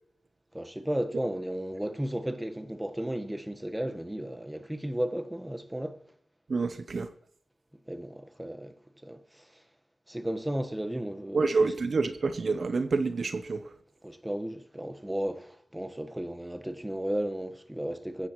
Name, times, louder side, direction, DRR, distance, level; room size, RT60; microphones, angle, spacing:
voice 1, 0.5-6.0 7.9-8.7 9.0-9.6 10.1-11.7 14.0-18.3, right 1 dB, 10° right, 1.3 m, -34 dB
voice 2, 6.5-7.1 11.3-13.7, right 4 dB, 60° right, 0.7 m, -28 dB
22.0 x 9.9 x 3.1 m
cardioid pair, 45°, 0 cm